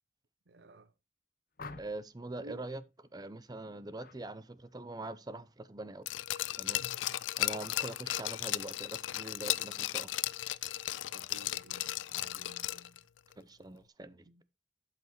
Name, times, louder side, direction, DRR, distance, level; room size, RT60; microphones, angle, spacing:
voice 1, 0.5-0.9 2.4-2.7 11.1-13.1 14.2-14.4, right 2 dB, 65° right, 0.7 m, -54 dB
sound 1, 1.6-2.2 3.9-4.2 4.6-5.0, left 3 dB, 50° left, 0.8 m, -48 dB
voice 2, 1.8-2.8 3.1-6.1 6.6-6.9 7.4-10.1 13.4-14.3, right 2 dB, 20° right, 0.6 m, -43 dB
Glass, 6.1-13.0 13.3-13.4, left 14 dB, 90° left, 0.4 m, -35 dB
12.0 x 5.9 x 3.1 m
head